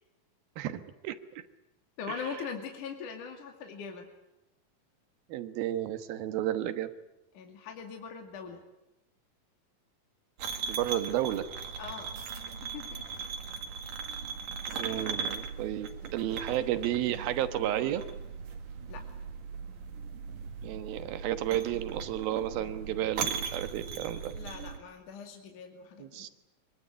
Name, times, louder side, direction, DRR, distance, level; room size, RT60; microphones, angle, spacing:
voice 1, 0.6-1.4 2.1-2.3 5.3-6.9 10.7-11.5 14.8-18.0 20.6-24.3 26.0-26.3, right 12 dB, 80° right, 11 dB, 3.1 m, -32 dB
voice 2, 2.0-4.1 7.3-8.6 11.8-12.2 12.6-13.3 18.9-19.0 24.3-26.3, left 6 dB, 60° left, 4 dB, 3.6 m, -41 dB
sound 1, 10.4-24.8, right 6 dB, 60° right, 3.4 m, -38 dB
24.0 x 23.0 x 9.6 m, 0.90 s
omnidirectional pair, 4.3 m